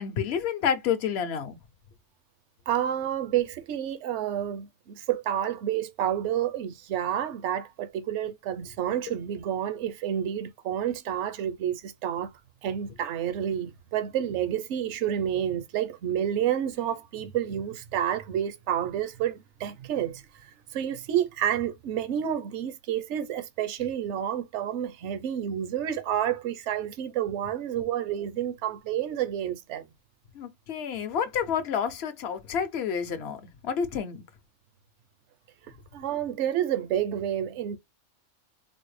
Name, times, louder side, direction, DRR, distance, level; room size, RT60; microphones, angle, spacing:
voice 1, 0.0-1.6 30.3-34.2, left 7 dB, 60° left, 0.9 m, -29 dB
voice 2, 2.7-12.3 12.6-20.2 20.7-29.9 35.9-37.8, right 10 dB, 70° right, 0.9 m, -29 dB
4.0 x 2.1 x 3.1 m
omnidirectional pair, 1.3 m